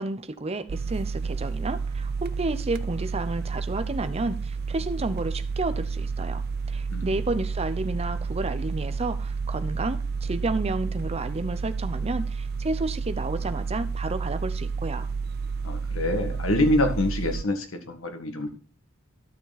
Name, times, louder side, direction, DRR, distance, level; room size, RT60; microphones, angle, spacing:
voice 1, 0.0-6.4 6.7-15.1, right 2 dB, 30° right, 0.7 m, -31 dB
sound 1, 0.7-17.4, right 5 dB, 50° right, 0.4 m, -30 dB
voice 2, 15.6-18.5, left 1 dB, 80° left, 1.8 m, -26 dB
12.0 x 6.6 x 4.1 m
head